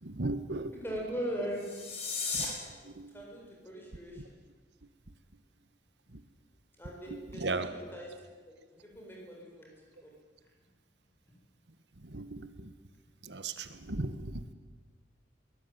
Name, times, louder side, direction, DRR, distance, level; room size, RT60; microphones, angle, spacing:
voice 1, 0.0-0.7 1.4-1.5 2.3-2.6 2.8-3.1 6.1-6.2 7.1-7.7 12.0-12.7 13.2-14.5, right 2 dB, 75° right, 11 dB, 1.4 m, -37 dB
voice 2, 0.8-2.0 3.1-4.3 6.8-8.5 8.8-10.1, equal, 15° left, -1 dB, 7.8 m, -40 dB
sound 1, 1.5-2.5, left 5 dB, 35° left, 5.5 m, -35 dB
22.0 x 19.0 x 9.5 m, 1.3 s
head